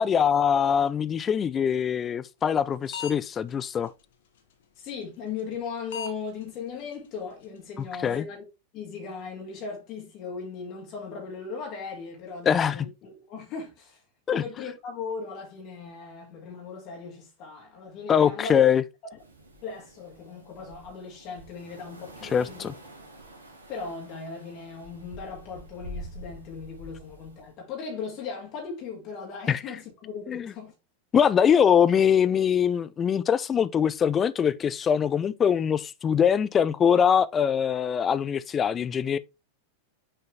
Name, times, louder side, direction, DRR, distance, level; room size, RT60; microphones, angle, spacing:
voice 1, 0.0-3.9 8.0-8.3 12.5-12.9 14.3-14.4 18.1-18.8 22.2-22.7 29.5-29.6 30.3-30.5 31.1-39.2, left 8 dB, 25° left, 0.5 m, -23 dB
sound 1, 2.5-2.6 2.9-3.4 3.9-4.0 5.4-5.6 5.9-6.1 6.4-6.5 6.9-7.0 7.4-7.5 7.8-8.2, left 8 dB, 55° left, 1.1 m, -37 dB
voice 2, 4.8-8.4 8.7-14.0 14.3-18.6 19.6-22.7 23.7-30.7 31.5-31.6, left 5 dB, 40° left, 2.0 m, -38 dB
sound 2, 19.2-27.5, right 1 dB, 75° right, 1.7 m, -46 dB
6.2 x 4.5 x 3.3 m
figure-of-eight pair, 90°, 0 cm